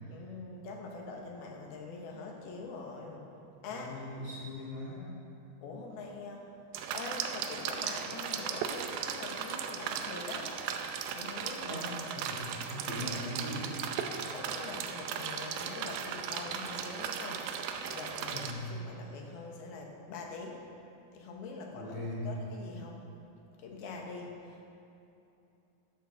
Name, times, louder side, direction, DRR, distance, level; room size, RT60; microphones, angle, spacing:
voice 1, 0.1-3.3 3.6-4.0 5.6-6.5 6.9-10.6 11.1-11.8 14.3-20.6 21.1-23.1 23.6-24.6, left 3 dB, 80° left, 0 dB, 3.4 m, -44 dB
voice 2, 3.7-5.1 11.7-11.9 12.2-13.7 18.3-18.6 21.7-22.2, left 1 dB, 30° left, -9 dB, 3.6 m, -40 dB
sound 1, 6.7-18.5, right 7 dB, 80° right, 2.4 m, -37 dB
15.5 x 12.5 x 3.7 m, 2.8 s
omnidirectional pair, 4.3 m